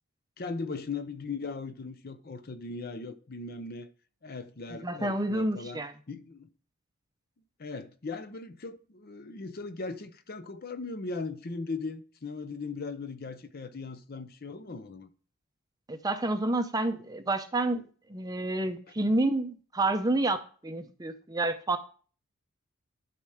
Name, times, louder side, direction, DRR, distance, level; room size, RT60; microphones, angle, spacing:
voice 1, 0.4-3.9 4.2-5.8 6.1-6.5 7.6-15.1, left 4 dB, 40° left, 0.6 m, -38 dB
voice 2, 4.8-5.9 15.9-20.4 20.6-21.8, right 2 dB, 15° right, 0.6 m, -29 dB
11.5 x 4.3 x 4.9 m
head